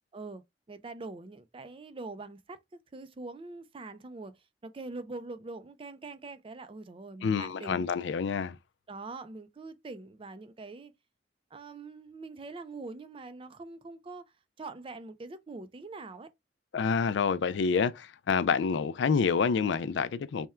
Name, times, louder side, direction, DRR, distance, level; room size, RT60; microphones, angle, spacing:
voice 1, 0.1-2.6 2.9-4.4 4.6-7.9 8.9-10.9 11.5-14.2 14.6-16.3, right 3 dB, 30° right, 0.4 m, -43 dB
voice 2, 7.2-8.6 16.7-20.5, left 5 dB, 70° left, 0.4 m, -28 dB
3.5 x 2.1 x 4.3 m
head